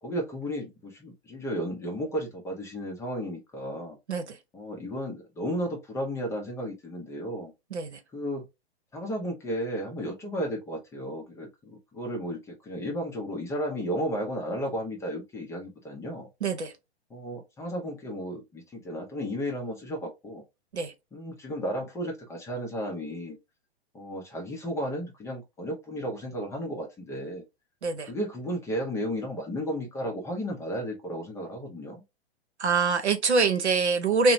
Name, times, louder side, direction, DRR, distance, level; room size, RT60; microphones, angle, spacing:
voice 1, 0.0-4.0 4.5-7.5 8.1-8.5 8.9-16.3 17.1-20.4 21.1-23.4 23.9-27.4 28.0-32.0, equal, 10° left, 0.5 m, -33 dB
voice 2, 16.4-16.7 20.7-20.9 27.8-28.1 32.6-34.3, right 4 dB, 90° right, 0.8 m, -25 dB
2.8 x 2.1 x 2.4 m
hypercardioid pair, 120°, 33 cm